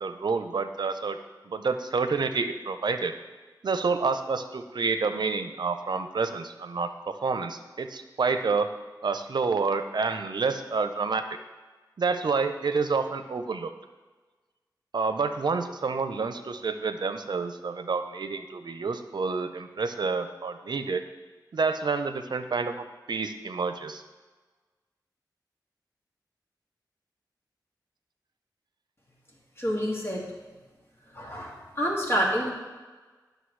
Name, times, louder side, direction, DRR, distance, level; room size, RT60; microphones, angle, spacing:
voice 1, 0.0-1.2 1.4-3.1 3.6-8.7 9.0-11.2 12.0-13.7 14.9-21.0 21.5-24.0, right 4 dB, 75° right, 9 dB, 0.6 m, -28 dB
voice 2, 29.6-30.2 31.1-32.5, equal, 35° left, -3 dB, 2.1 m, -28 dB
11.0 x 6.5 x 3.2 m, 1.3 s
wide cardioid pair, 80°, 7 cm